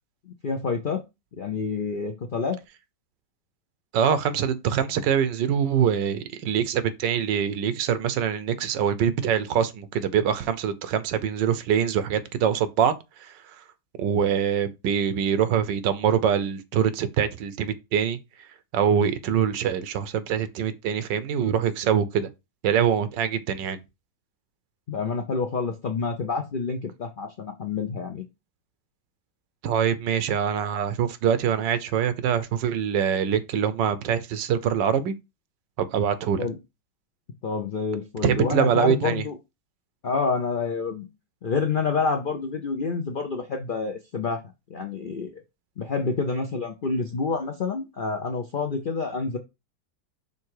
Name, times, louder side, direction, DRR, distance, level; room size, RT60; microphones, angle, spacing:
voice 1, 0.3-1.0 1.4-2.6 24.9-28.2 36.4-36.6 37.4-39.4 40.0-41.1 41.4-44.4 44.7-45.4 45.8-49.4, left 4 dB, 75° left, 0.4 m, -28 dB
voice 2, 3.9-13.6 14.0-18.2 18.7-22.3 22.6-23.8 29.6-35.1 35.8-36.5 38.2-39.2, right 8 dB, 90° right, 1.4 m, -24 dB
5.5 x 3.6 x 4.7 m
omnidirectional pair, 1.9 m